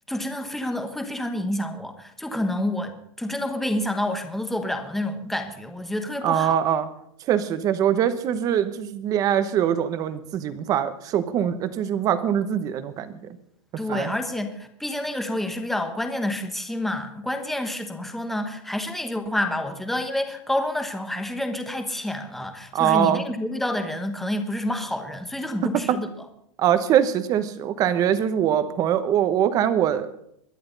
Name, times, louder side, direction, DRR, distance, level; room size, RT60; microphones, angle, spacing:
voice 1, 0.1-6.6 13.8-26.1, left 1 dB, ahead, 6 dB, 1.1 m, -28 dB
voice 2, 6.2-6.9 7.3-13.2 13.9-14.1 22.7-23.2 25.6-26.0 26.6-30.1, right 9 dB, 20° right, 12 dB, 1.0 m, -23 dB
22.5 x 10.5 x 4.0 m, 0.73 s
supercardioid pair, 170°, 17 cm